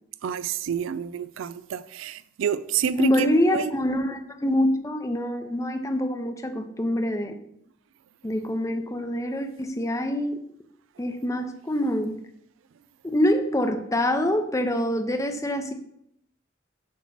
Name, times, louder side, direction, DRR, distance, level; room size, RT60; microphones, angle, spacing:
voice 1, 0.2-3.7, right 7 dB, 80° right, 0.3 m, -28 dB
voice 2, 3.0-7.4 8.2-10.4 11.0-12.2 13.0-15.7, left 1 dB, 15° left, 0.5 m, -25 dB
7.3 x 2.9 x 5.7 m
head